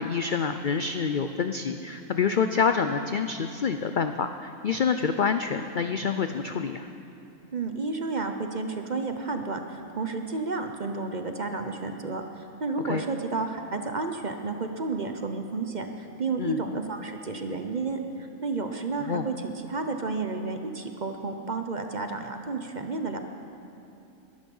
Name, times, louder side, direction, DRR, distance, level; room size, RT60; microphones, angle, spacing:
voice 1, 0.0-6.9 12.8-13.0 16.4-16.6 19.1-19.2, left 6 dB, 65° left, 8 dB, 0.4 m, -27 dB
voice 2, 7.5-23.2, right 3 dB, 40° right, 6 dB, 0.8 m, -31 dB
21.0 x 11.5 x 5.5 m, 2.7 s
omnidirectional pair, 1.5 m